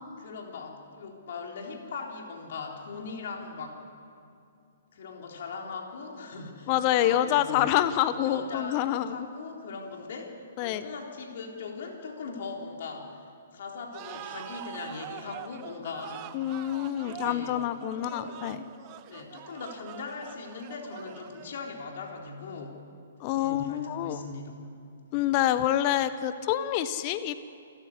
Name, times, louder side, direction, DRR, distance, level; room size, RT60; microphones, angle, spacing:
voice 1, 0.2-3.8 4.9-7.8 8.3-16.3 17.0-17.6 17.9-18.4 19.0-22.8 23.4-24.6, left 4 dB, 55° left, 1 dB, 3.7 m, -40 dB
voice 2, 6.7-9.2 10.6-10.8 16.3-18.6 23.2-24.2 25.1-27.4, left 12 dB, 35° left, 13 dB, 1.0 m, -27 dB
sound 1, 13.9-21.8, right 13 dB, 35° right, 0.9 m, -44 dB
28.0 x 13.5 x 9.8 m, 2.5 s
figure-of-eight pair, 120°, 0 cm